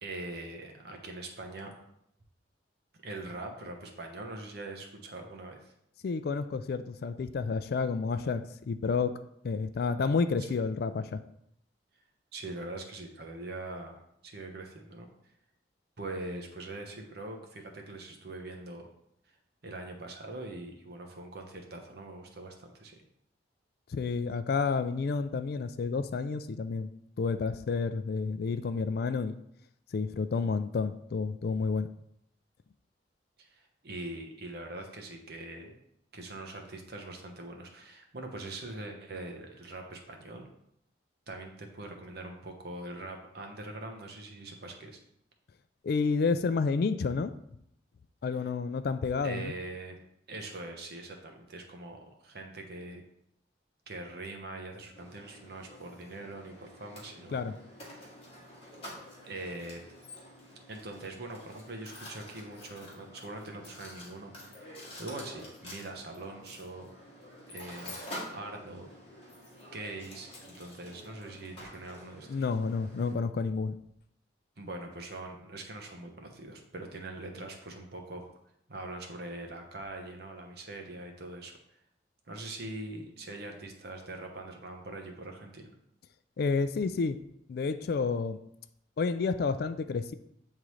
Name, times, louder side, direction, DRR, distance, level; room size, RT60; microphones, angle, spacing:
voice 1, 0.0-1.7 3.0-5.7 10.5-10.6 12.3-15.1 16.0-18.9 19.6-23.0 33.4-35.8 36.1-40.5 41.3-45.0 49.2-50.0 50.3-53.0 53.9-57.6 59.3-59.8 60.7-66.9 67.5-68.0 68.3-68.9 69.7-72.5 74.6-78.3 78.7-81.6 82.3-85.7, right 2 dB, 55° right, 3 dB, 1.0 m, -42 dB
voice 2, 6.0-9.1 9.4-11.2 23.9-26.9 27.2-29.3 29.9-31.9 45.8-47.3 48.2-49.5 57.3-57.5 72.3-73.8 86.4-87.2 87.5-88.4 89.0-90.1, left 4 dB, 55° left, 12 dB, 0.3 m, -30 dB
Mechanisms, 55.0-73.1, left 1 dB, 30° left, 1.7 m, -48 dB
8.2 x 3.7 x 3.1 m, 0.75 s
head